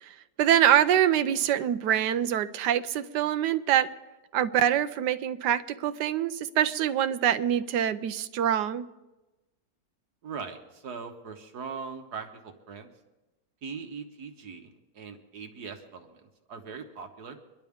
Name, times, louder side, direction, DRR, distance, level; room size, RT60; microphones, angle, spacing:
voice 1, 0.0-3.9 4.3-8.8, right 10 dB, 85° right, 10 dB, 1.3 m, -25 dB
voice 2, 10.2-12.9 13.6-17.4, right 5 dB, 70° right, 5 dB, 1.7 m, -41 dB
24.5 x 11.5 x 3.6 m, 1.0 s
omnidirectional pair, 1.8 m